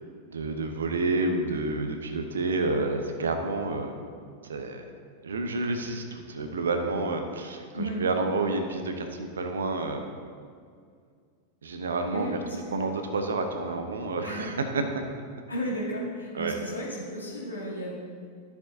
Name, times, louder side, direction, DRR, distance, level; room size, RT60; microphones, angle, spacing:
voice 1, 0.3-4.0 4.4-4.9 5.2-10.1 11.6-12.4 12.7-15.0 16.3-16.6, right 3 dB, 70° right, 6 dB, 0.8 m, -29 dB
voice 2, 12.1-13.0 14.2-14.6 15.5-17.9, equal, 80° left, -5 dB, 2.2 m, -34 dB
12.5 x 7.0 x 2.7 m, 2.1 s
figure-of-eight pair, 90°, 0 cm